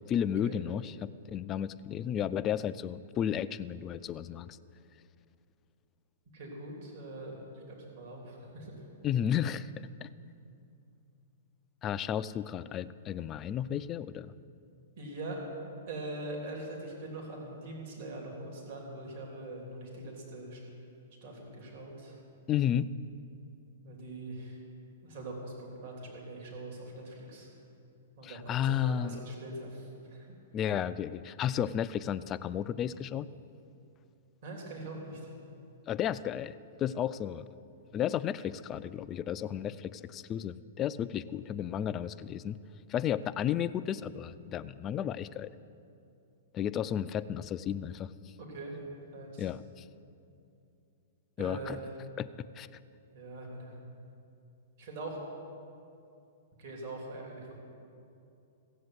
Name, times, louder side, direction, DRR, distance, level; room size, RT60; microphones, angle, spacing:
voice 1, 0.1-4.6 9.0-9.7 10.0-10.1 11.8-14.3 22.5-22.9 28.2-29.2 30.5-33.3 35.9-37.5 37.9-42.6 42.9-45.5 46.5-48.1 49.4-49.8 51.4-51.8 52.2-52.3 52.6-52.7, left 9 dB, 25° left, 13 dB, 0.4 m, -33 dB
voice 2, 6.3-8.7 15.0-15.4 15.9-20.6 21.2-22.2 23.8-24.6 25.0-27.5 28.2-30.3 34.4-35.3 48.4-48.8 49.1-49.5 51.4-51.9 53.1-53.7 54.8-55.2 56.6-57.5, right 2 dB, 60° right, -1 dB, 3.3 m, -42 dB
15.5 x 7.8 x 8.0 m, 2.6 s
hypercardioid pair, 140°, 0 cm